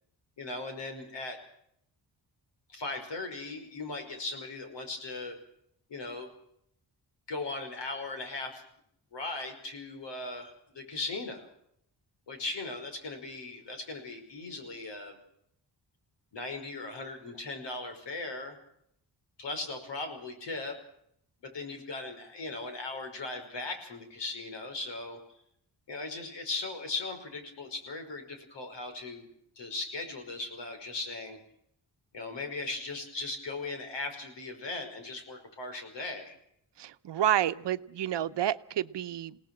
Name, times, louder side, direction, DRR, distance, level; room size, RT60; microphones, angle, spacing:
voice 1, 0.4-1.4 2.7-5.4 5.9-6.3 7.3-8.6 9.1-11.4 12.3-15.2 16.3-18.6 19.4-20.8 21.4-25.2 25.9-29.3 29.6-31.4 32.1-36.4, left 3 dB, 80° left, 6 dB, 5.5 m, -38 dB
voice 2, 36.8-39.5, right 11 dB, 75° right, 12 dB, 0.9 m, -30 dB
28.5 x 18.5 x 6.2 m, 0.72 s
wide cardioid pair, 175°, 42 cm